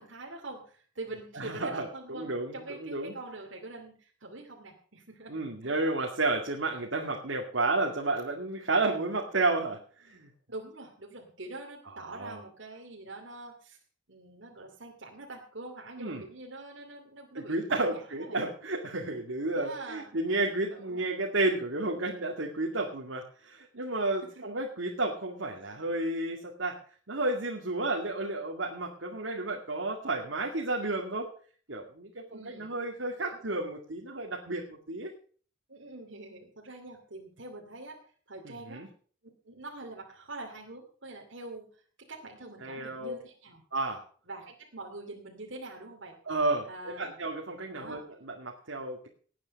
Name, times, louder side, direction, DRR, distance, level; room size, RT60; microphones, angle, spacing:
voice 1, 0.0-5.8 10.5-13.8 14.1-18.4 19.5-20.1 20.7-21.0 24.4-24.5 32.3-32.7 33.2-33.4 35.7-38.0 38.3-38.9 39.4-41.7 42.1-43.6 44.3-46.2 46.7-47.2 47.7-48.0, right 2 dB, 70° right, -1 dB, 2.7 m, -44 dB
voice 2, 1.4-3.1 5.3-10.3 12.0-12.4 16.0-16.2 17.3-26.8 27.1-31.3 31.7-35.1 38.4-38.9 42.6-43.1 43.7-44.0 46.3-49.1, right 2 dB, 85° right, 0 dB, 2.2 m, -32 dB
18.5 x 9.0 x 5.3 m, 0.44 s
head